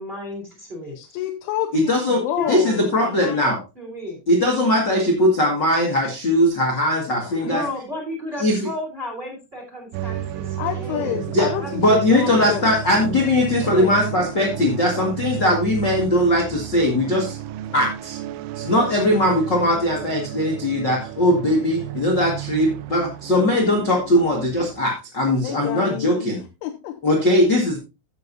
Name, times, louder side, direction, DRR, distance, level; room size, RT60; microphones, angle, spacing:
voice 1, 0.0-1.0 2.4-4.2 7.4-11.3 11.6-12.5 15.4-15.6, left 1 dB, 10° right, 1 dB, 2.6 m, -33 dB
voice 2, 1.0-2.9 7.3-7.5 10.6-12.7 13.6-14.0 25.4-27.0, left 11 dB, 80° left, 4 dB, 3.2 m, -28 dB
voice 3, 1.7-2.2 2.5-3.6 4.3-7.6 8.4-8.7 11.3-11.5 11.7-17.4 17.7-18.2 18.5-26.4 27.0-27.8, left 1 dB, 60° left, 0 dB, 1.1 m, -20 dB
sound 1, 9.9-24.8, right 12 dB, 80° right, 2.8 m, -33 dB
14.5 x 7.3 x 2.7 m, 0.27 s
omnidirectional pair, 5.8 m